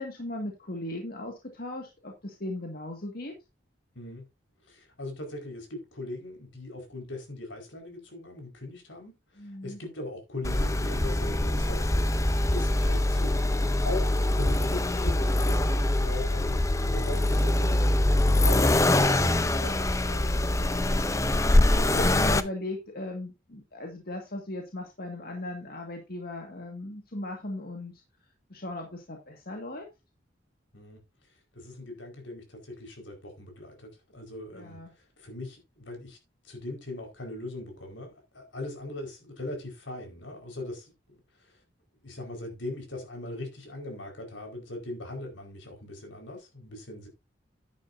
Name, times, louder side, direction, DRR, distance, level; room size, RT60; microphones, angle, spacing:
voice 1, 0.0-3.3 9.4-9.8 21.5-27.9 28.5-29.9 34.5-34.9, left 1 dB, 50° left, 1.9 m, -37 dB
voice 2, 4.7-12.1 12.5-13.4 13.8-20.6 30.7-31.0 31.5-34.8 35.2-36.2 36.4-40.9 41.4-41.6 42.0-47.1, left 2 dB, 80° left, 4.8 m, -40 dB
Accelerating revving vroom, 10.4-22.4, left 1 dB, 15° left, 0.6 m, -24 dB
10.5 x 10.0 x 2.7 m
head